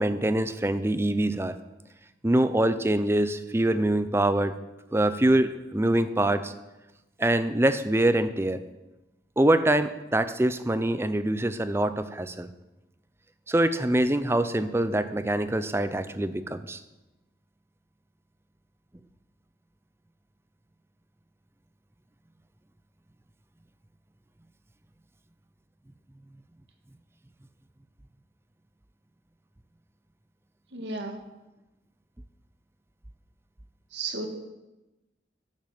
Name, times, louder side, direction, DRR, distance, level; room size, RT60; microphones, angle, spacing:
voice 1, 0.0-1.5 2.2-4.5 4.9-6.5 7.2-8.6 9.4-12.5 13.5-16.8, right 1 dB, 15° right, 12 dB, 0.5 m, -24 dB
voice 2, 30.7-31.2 33.9-34.4, right 3 dB, 75° right, 4 dB, 1.7 m, -33 dB
10.5 x 7.3 x 7.6 m, 1.0 s
head